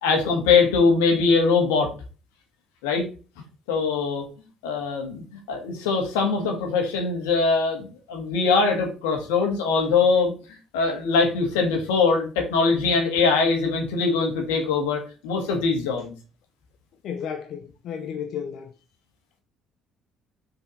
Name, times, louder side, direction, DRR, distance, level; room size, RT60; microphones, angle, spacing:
voice 1, 0.0-1.9 2.8-3.1 3.7-4.3 4.6-10.3 10.7-16.1, left 4 dB, 90° left, 1.9 m, -22 dB
voice 2, 17.0-18.7, left 7 dB, 65° left, 0.6 m, -33 dB
5.4 x 4.7 x 4.0 m
supercardioid pair, 65°, 0 cm